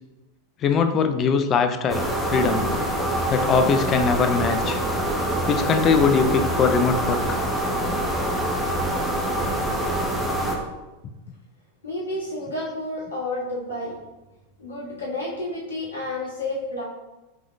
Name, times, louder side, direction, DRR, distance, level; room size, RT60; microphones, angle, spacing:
voice 1, 0.6-2.0 2.3-2.7 3.3-4.8 5.5-7.2, left 5 dB, 30° left, 8 dB, 0.4 m, -21 dB
sound 1, 1.9-10.6, right 1 dB, 5° left, 0.7 m, -25 dB
voice 2, 11.8-14.0 14.6-16.8, left 1 dB, 70° left, -5 dB, 1.4 m, -30 dB
4.9 x 3.7 x 2.2 m, 1.1 s
figure-of-eight pair, 90°, 0 cm